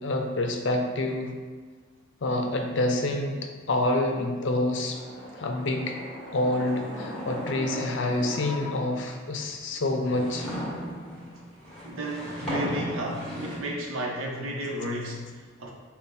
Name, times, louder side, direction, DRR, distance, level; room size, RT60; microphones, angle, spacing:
voice 1, 0.0-1.3 2.2-3.4 3.7-5.0 5.4-6.0 6.3-10.5, left 1 dB, 65° left, 3 dB, 0.5 m, -27 dB
sound 1, 4.8-9.1 9.7-13.6, equal, 5° left, 1.4 m, -36 dB
voice 2, 11.8-15.7, equal, 90° right, 0 dB, 0.8 m, -33 dB
5.4 x 2.3 x 4.1 m, 1.4 s
head